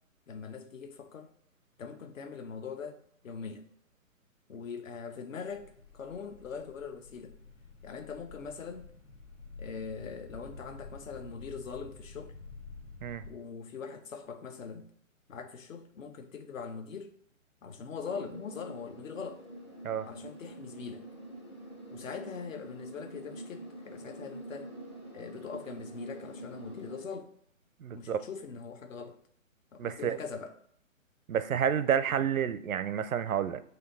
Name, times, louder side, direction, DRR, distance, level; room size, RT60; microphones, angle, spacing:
voice 1, 0.3-1.3 1.8-3.0 3.2-3.6 4.5-7.3 7.8-8.8 9.6-12.3 13.3-14.9 15.3-17.1 17.6-19.4 20.0-21.1 21.9-24.7 25.1-27.3 27.9-29.2 29.7-30.5, left 5 dB, 70° left, 0.8 m, -42 dB
sound 1, 5.5-13.3, left 3 dB, 90° left, 1.4 m, -49 dB
sound 2, 18.1-27.1, right 1 dB, 20° left, 0.4 m, -46 dB
voice 2, 27.8-28.2 29.8-30.2 31.3-33.6, right 8 dB, 85° right, 0.5 m, -30 dB
4.4 x 2.7 x 3.9 m
hypercardioid pair, 140°, 40 cm